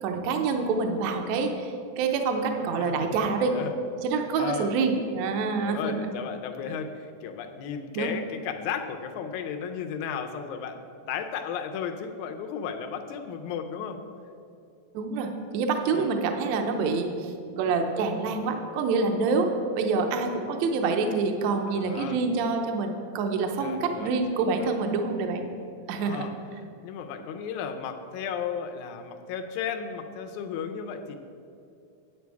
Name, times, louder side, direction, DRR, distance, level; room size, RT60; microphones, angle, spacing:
voice 1, 0.0-3.5 4.0-6.1 8.0-8.1 14.9-25.5 25.9-26.3, right 4 dB, 75° right, 4 dB, 1.9 m, -27 dB
voice 2, 2.6-3.7 4.4-4.8 5.6-10.8 11.1-14.0 15.9-16.1 21.7-22.2 23.6-24.7 26.0-26.3 26.8-31.2, left 7 dB, 80° left, 6 dB, 2.1 m, -35 dB
9.5 x 8.2 x 4.6 m, 2.5 s
omnidirectional pair, 3.5 m